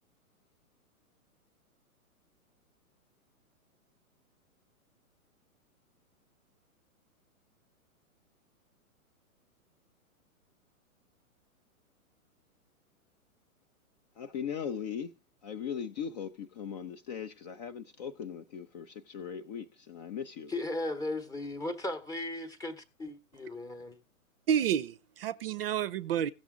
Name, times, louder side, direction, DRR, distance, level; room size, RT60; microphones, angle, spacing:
voice 1, 14.2-15.1 15.4-20.5, left 7 dB, 30° left, 0.5 m, -39 dB
voice 2, 20.5-24.0, left 2 dB, 10° left, 0.9 m, -36 dB
voice 3, 24.5-26.3, right 9 dB, 40° right, 0.6 m, -30 dB
16.0 x 6.1 x 3.7 m
figure-of-eight pair, 120°, 43 cm